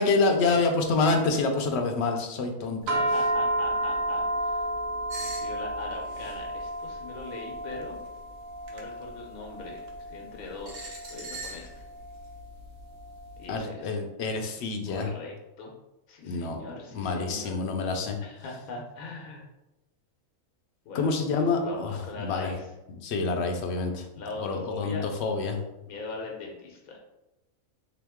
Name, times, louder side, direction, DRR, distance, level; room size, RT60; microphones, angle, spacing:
voice 1, 0.0-3.0 13.5-15.1 16.2-16.6 16.9-18.2 20.9-22.5 22.9-24.1 24.4-25.6, left 3 dB, 65° left, 4 dB, 0.7 m, -27 dB
voice 2, 2.9-4.6 5.2-8.0 8.7-9.8 10.1-11.7 13.4-14.0 14.9-15.7 16.1-17.5 18.2-19.5 20.8-22.7 24.1-25.1 25.9-27.0, left 3 dB, 90° left, 0 dB, 1.2 m, -41 dB
sound 1, 2.9-13.4, right 1 dB, 75° right, 1.0 m, -32 dB
sound 2, 5.1-5.5 6.1-6.4 7.8-8.1 8.7-8.8 9.8-9.9 10.7-11.7, right 2 dB, 60° right, 1.0 m, -40 dB
3.6 x 2.9 x 3.5 m, 0.95 s
omnidirectional pair, 1.4 m